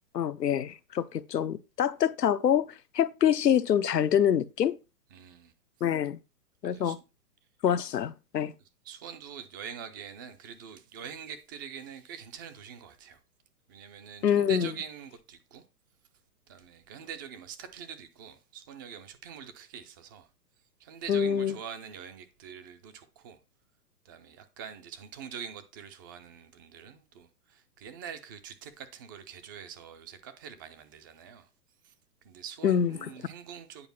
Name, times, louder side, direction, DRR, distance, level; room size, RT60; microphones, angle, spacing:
voice 1, 0.1-4.8 5.8-6.2 6.6-7.0 7.6-8.5 14.2-14.7 21.1-21.5 32.6-33.1, left 9 dB, 85° left, 1.0 m, -26 dB
voice 2, 5.1-5.5 6.6-7.0 8.8-13.2 13.7-15.6 16.5-20.3 20.8-23.4 24.0-31.5 31.8-31.9 32.2-33.9, right 8 dB, 15° right, 0.4 m, -44 dB
9.6 x 4.9 x 5.4 m
hypercardioid pair, 130°, 48 cm